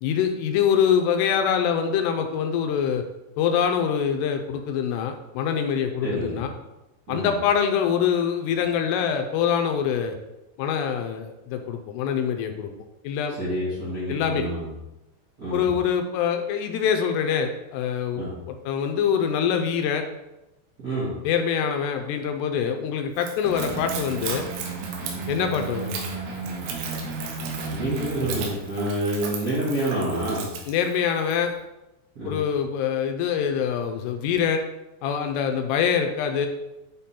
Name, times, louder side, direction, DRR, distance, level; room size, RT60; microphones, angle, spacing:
voice 1, 0.0-3.0 3.4-6.5 7.1-10.2 10.6-12.7 13.0-13.4 14.1-14.5 15.5-20.0 21.2-24.5 25.3-26.0 30.7-31.5 32.2-34.6 35.0-36.5, left 7 dB, 85° left, 5 dB, 2.6 m, -24 dB
voice 2, 6.0-6.4 7.1-7.3 13.4-14.7 15.4-15.7 18.1-18.3 20.8-21.1 27.7-30.5 32.1-32.3, right 1 dB, 45° right, -10 dB, 1.1 m, -28 dB
Splash splatter / Trickle dribble, 23.1-31.5, right 6 dB, 85° right, 3.1 m, -37 dB
sound 1, 23.4-28.5, right 3 dB, 65° right, 2.8 m, -33 dB
8.1 x 3.7 x 4.3 m, 0.97 s
omnidirectional pair, 4.9 m